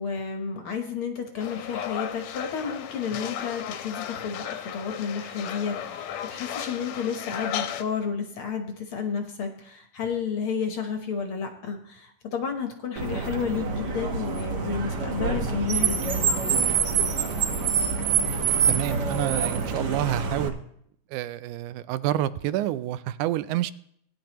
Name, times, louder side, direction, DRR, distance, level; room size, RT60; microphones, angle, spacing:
voice 1, 0.0-16.4, left 6 dB, 60° left, 5 dB, 1.5 m, -31 dB
sound 1, 1.4-7.8, left 9 dB, 75° left, 1.9 m, -35 dB
Car, 13.0-20.5, right 5 dB, 55° right, 1.1 m, -26 dB
voice 2, 18.7-20.5 21.1-23.7, right 13 dB, 85° right, 16 dB, 2.0 m, -28 dB
18.5 x 10.5 x 3.0 m, 0.68 s
omnidirectional pair, 3.5 m